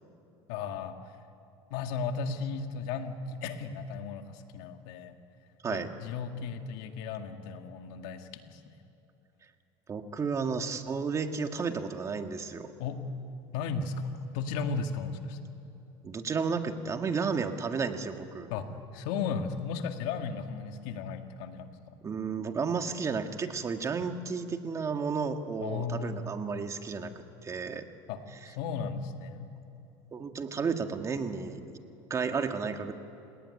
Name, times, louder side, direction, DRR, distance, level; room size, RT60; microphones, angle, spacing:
voice 1, 0.5-1.1 1.7-5.1 5.7-8.6 12.8-13.0 13.5-15.5 18.5-18.7 18.9-22.0 25.6-26.3 28.1-28.2 28.5-29.5, left 5 dB, 80° left, 6 dB, 2.1 m, -35 dB
voice 2, 9.9-12.7 16.0-18.5 22.0-27.1 27.4-27.8 30.1-31.6 32.1-32.9, right 5 dB, 30° right, 6 dB, 1.8 m, -32 dB
29.5 x 18.5 x 9.9 m, 2.8 s
cardioid pair, 120°, 10 cm